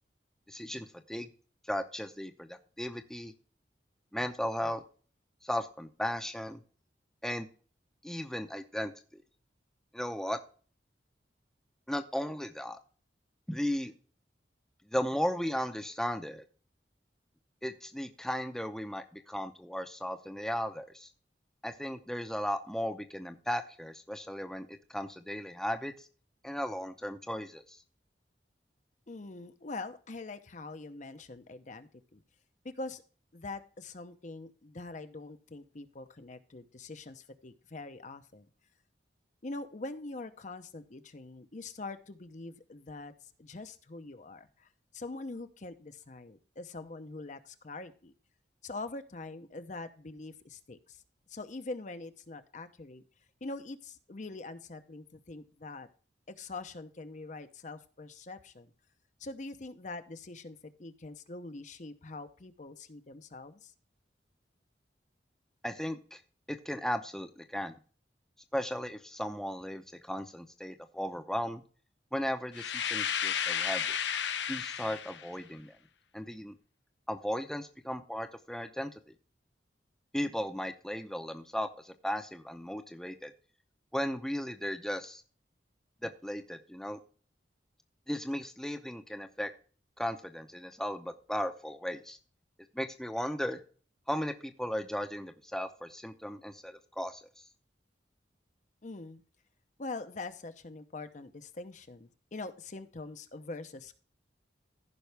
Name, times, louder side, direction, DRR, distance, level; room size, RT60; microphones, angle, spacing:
voice 1, 0.5-1.3 1.7-3.3 4.1-4.8 5.4-6.6 7.2-7.5 8.0-8.9 9.9-10.4 11.9-12.8 13.5-13.9 14.9-16.4 17.6-21.1 21.6-26.1 26.4-27.8 65.6-66.2 66.5-67.8 68.5-71.6 72.1-74.0 74.5-75.7 76.1-76.5 77.1-78.9 80.1-83.3 83.9-85.2 86.0-87.0 88.1-89.5 90.0-92.2 92.7-93.6 94.1-97.2, equal, 5° left, 6 dB, 0.7 m, -36 dB
voice 2, 29.1-32.2 32.6-33.0 33.3-38.5 39.4-43.1 43.4-44.7 44.9-48.1 48.6-51.0 51.3-53.0 53.4-55.9 56.3-58.7 59.2-63.7 98.8-99.2 99.8-104.0, left 3 dB, 45° left, 9 dB, 0.7 m, -43 dB
sound 1, 72.5-75.3, left 8 dB, 90° left, 0.8 m, -33 dB
15.0 x 5.5 x 3.4 m, 0.40 s
head